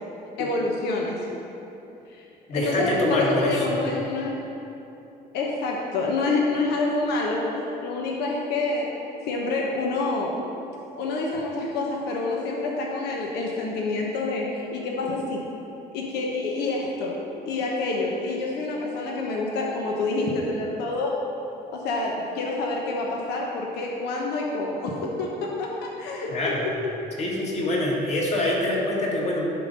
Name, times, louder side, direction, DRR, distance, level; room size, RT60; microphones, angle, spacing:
voice 1, 0.4-1.3 2.1-2.2 2.5-4.4 5.3-8.9 9.3-10.4 10.9-15.4 15.9-21.2 21.7-26.9, left 3 dB, 85° left, -2 dB, 1.1 m, -27 dB
voice 2, 2.5-3.7 26.3-26.6 27.2-29.5, left 1 dB, 40° left, -3 dB, 1.9 m, -25 dB
11.0 x 3.9 x 5.2 m, 2.8 s
cardioid pair, 110°, 17 cm